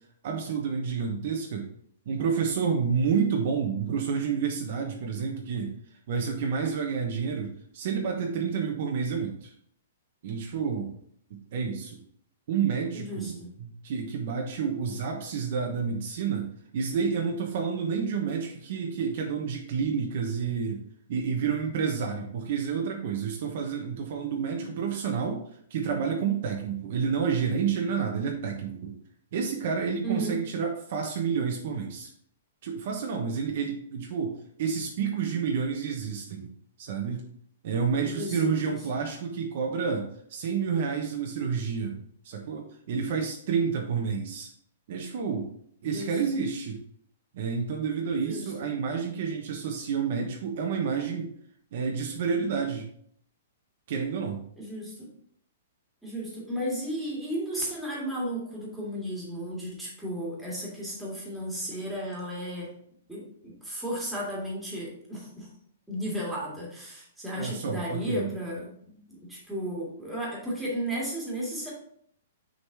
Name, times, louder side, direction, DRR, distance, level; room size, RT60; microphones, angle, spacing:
voice 1, 0.2-1.7 2.1-5.7 6.1-9.5 10.2-10.9 11.5-12.0 12.5-16.5 16.7-20.8 21.1-25.4 25.7-28.9 29.3-32.1 32.6-36.5 36.8-37.2 37.6-44.5 44.9-45.5 45.8-46.8 47.3-51.3 51.7-52.9 53.9-54.4 67.3-68.3, right 6 dB, 50° right, 2 dB, 1.1 m, -29 dB
voice 2, 12.9-13.5 30.0-30.4 38.0-38.8 45.8-46.1 48.2-48.5 54.6-55.1 56.0-62.7 63.1-65.5 65.9-71.7, equal, 5° right, -5 dB, 2.1 m, -34 dB
6.6 x 4.0 x 4.7 m, 0.63 s
hypercardioid pair, 165°, 0 cm